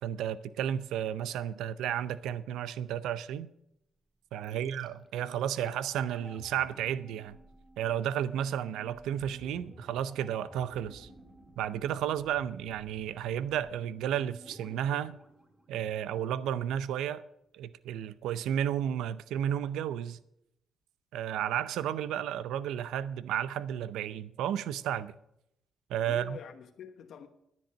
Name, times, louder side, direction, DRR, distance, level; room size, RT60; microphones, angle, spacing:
voice 1, 0.0-3.5 4.3-7.4 7.8-11.1 11.6-15.2 15.7-17.2 17.5-20.2 21.1-25.1 25.9-26.4, right 10 dB, 85° right, 0.6 m, -32 dB
sound 1, 4.4-16.4 16.7-16.8, right 1 dB, 10° right, 1.7 m, -54 dB
voice 2, 5.3-5.8 26.1-27.3, left 7 dB, 65° left, 1.1 m, -48 dB
10.5 x 10.0 x 6.4 m
cardioid pair, 90°, 0 cm